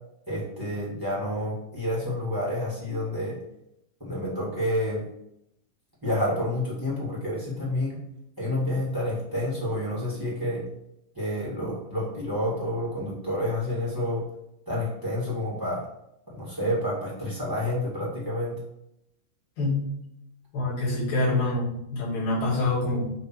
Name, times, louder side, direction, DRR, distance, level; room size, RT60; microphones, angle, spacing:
voice 1, 0.3-3.3 4.0-5.0 6.0-8.0 8.4-10.6 11.1-14.2 14.7-15.8 16.3-18.6, left 1 dB, 10° right, -6 dB, 1.4 m, -29 dB
voice 2, 19.6-19.9 20.5-23.1, left 2 dB, 80° left, -10 dB, 4.3 m, -26 dB
8.4 x 3.1 x 4.6 m, 0.80 s
omnidirectional pair, 4.0 m